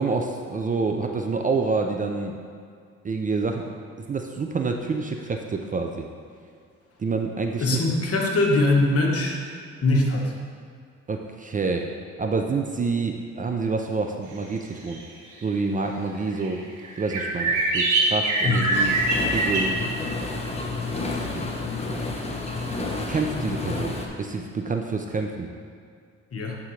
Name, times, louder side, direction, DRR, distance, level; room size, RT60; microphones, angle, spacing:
voice 1, 0.0-2.4 3.0-6.1 7.0-7.9 11.1-11.9 12.2-15.0 15.4-16.6 17.0-19.0 19.3-19.9 21.3-21.5 23.0-25.5, right 4 dB, 25° right, 3 dB, 0.5 m, -27 dB
voice 2, 7.6-9.4 9.8-10.3 18.4-18.7 19.8-19.9 26.3-26.6, left 2 dB, 50° left, 0 dB, 1.2 m, -22 dB
sound 1, 14.9-15.0 16.4-16.5 16.8-19.7, right 2 dB, 80° right, 1.5 m, -23 dB
sound 2, 18.7-24.1, left 3 dB, 20° left, 0.8 m, -30 dB
11.0 x 3.7 x 3.2 m, 2.2 s
cardioid pair, 90°, 30 cm